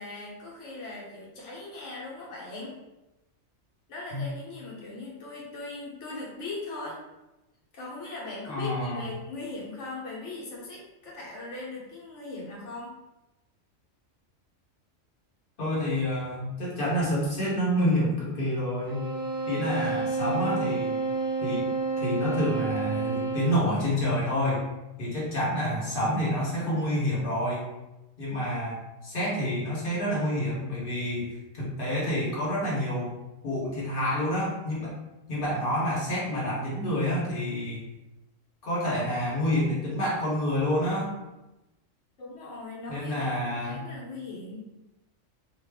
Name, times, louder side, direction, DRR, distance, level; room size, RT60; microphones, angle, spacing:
voice 1, 0.0-2.8 3.9-7.0 7.7-12.9 42.2-44.7, left 2 dB, 65° left, -4 dB, 1.2 m, -39 dB
voice 2, 8.5-9.1 15.6-19.1 19.5-21.0 21.4-21.7 22.0-24.6 25.0-27.7 28.2-28.8 29.0-33.1 33.4-34.9 35.3-37.8 38.6-41.1 42.9-43.9, equal, 45° left, -6 dB, 1.1 m, -28 dB
sound 1, 18.9-23.7, right 3 dB, 20° left, 1.1 m, -30 dB
2.6 x 2.4 x 3.4 m, 0.99 s
omnidirectional pair, 1.4 m